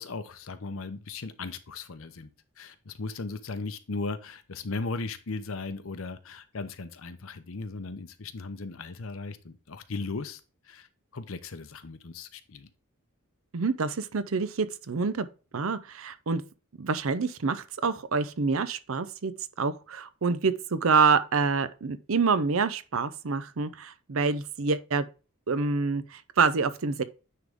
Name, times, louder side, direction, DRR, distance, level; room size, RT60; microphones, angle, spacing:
voice 1, 0.0-2.3 2.6-10.4 10.7-10.9 11.1-12.7, left 3 dB, 65° left, 0.8 m, -37 dB
voice 2, 13.5-15.3 15.5-16.4 16.8-19.3 19.6-25.0 25.5-27.0, right 4 dB, 65° right, 0.6 m, -27 dB
9.5 x 3.8 x 3.6 m
head